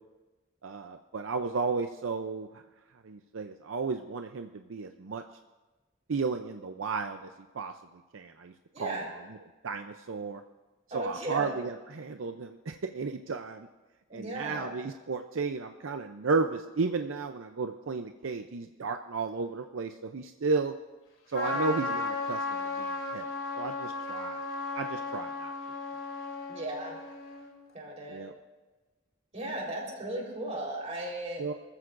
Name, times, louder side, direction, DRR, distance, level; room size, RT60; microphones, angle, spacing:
voice 1, 0.6-2.5 3.0-5.2 6.1-7.3 7.5-7.7 8.1-8.5 8.8-9.0 9.6-10.4 10.9-13.7 14.1-20.7 21.3-23.3 23.6-24.4 24.7-25.5 28.1-28.3 31.4-31.5, right 4 dB, 75° right, 6 dB, 0.6 m, -33 dB
voice 2, 8.7-9.1 10.9-11.5 14.1-14.7 21.4-21.6 26.5-27.0 27.7-28.2 29.3-31.4, right 1 dB, 35° right, -2 dB, 4.0 m, -36 dB
Trumpet, 21.3-27.5, left 3 dB, 75° left, 3.1 m, -35 dB
25.5 x 14.5 x 2.6 m, 1.2 s
head